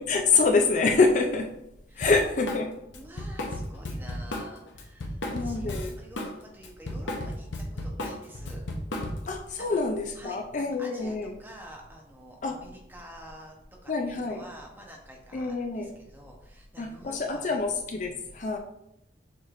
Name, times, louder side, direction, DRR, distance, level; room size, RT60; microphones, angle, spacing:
voice 1, 0.0-1.5 2.0-2.8 5.3-5.9 9.2-11.3 12.4-12.6 13.9-14.4 15.3-16.0 16.8-18.6, left 4 dB, 40° left, 4 dB, 0.4 m, -26 dB
Drum kit, 2.0-2.6 2.9-6.3 6.6-9.4, left 1 dB, 85° left, 0.7 m, -34 dB
voice 2, 2.9-8.6 9.6-9.8 10.1-13.6 13.8-17.6, right 1 dB, 10° right, -1 dB, 0.8 m, -48 dB
6.6 x 3.3 x 2.5 m, 0.81 s
head